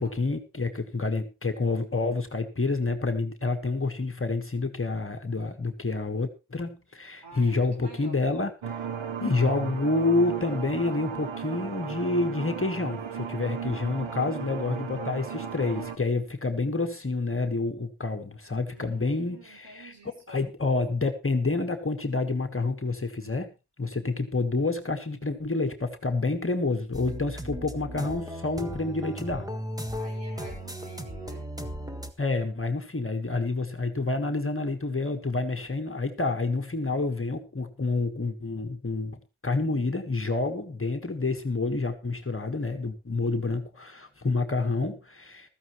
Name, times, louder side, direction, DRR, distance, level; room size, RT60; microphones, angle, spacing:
voice 1, 0.0-8.8 9.2-19.9 20.3-23.5 23.8-29.5 32.2-45.5, left 3 dB, 25° left, 6 dB, 1.6 m, -28 dB
voice 2, 7.2-8.2 14.0-15.4 18.7-20.4 30.0-31.5, right 3 dB, 60° right, 1 dB, 6.2 m, -49 dB
sound 1, 8.6-16.0, right 7 dB, 75° right, 1.5 m, -36 dB
sound 2, 26.9-32.1, equal, 10° right, 1.6 m, -36 dB
15.0 x 14.0 x 3.1 m, 0.28 s
wide cardioid pair, 100°, 46 cm